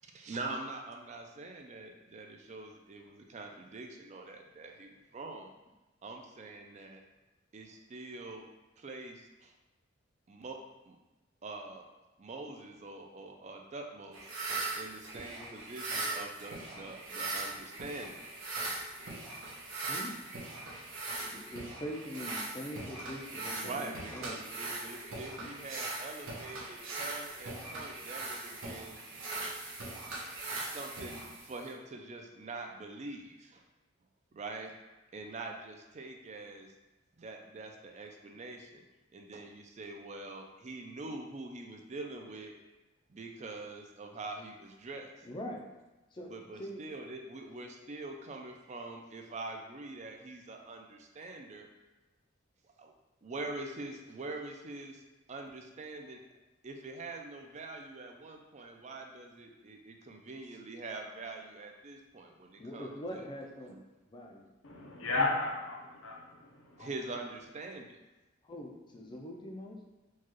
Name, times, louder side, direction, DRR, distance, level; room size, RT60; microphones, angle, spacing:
voice 1, 0.1-5.5 6.0-7.0 7.5-8.5 8.8-9.5 10.3-10.6 10.9-11.0 11.4-11.9 12.2-14.2 14.8-18.1 23.6-29.0 30.7-33.6 34.3-34.7 35.1-36.7 37.2-38.8 39.1-42.5 43.1-45.1 46.3-51.7 52.8-52.9 53.2-55.0 55.3-56.2 56.6-63.3 63.7-63.8 66.8-68.0, right 2 dB, 35° right, 3 dB, 0.4 m, -44 dB
sound 1, 14.1-31.7, right 2 dB, 75° right, 0.9 m, -40 dB
voice 2, 21.2-24.4 45.2-45.6 46.1-46.3 46.6-46.8 62.6-63.8 64.1-64.5 68.4-69.8, equal, 25° left, 0 dB, 0.4 m, -43 dB
voice 3, 64.6-66.9, left 3 dB, 80° left, -1 dB, 0.7 m, -34 dB
4.6 x 2.3 x 3.0 m, 1.1 s
head